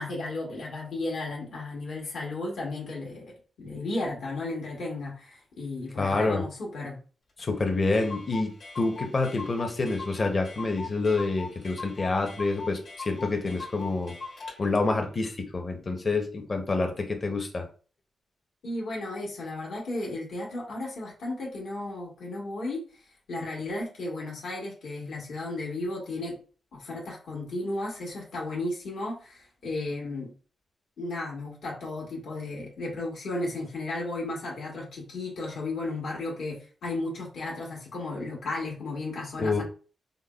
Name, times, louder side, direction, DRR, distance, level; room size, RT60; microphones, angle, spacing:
voice 1, 0.0-3.3 3.6-7.0 18.6-22.8 23.3-26.4 26.7-30.3 31.0-39.6, left 2 dB, 75° left, -3 dB, 1.4 m, -34 dB
voice 2, 6.0-6.4 7.4-14.1 14.6-17.7 39.4-39.6, left 3 dB, 30° left, 4 dB, 0.7 m, -27 dB
Clock, 7.4-7.5 7.7-7.8 7.9-14.6, left 4 dB, 55° left, 1.6 m, -41 dB
5.1 x 2.0 x 2.3 m, 0.38 s
wide cardioid pair, 150°, 0 cm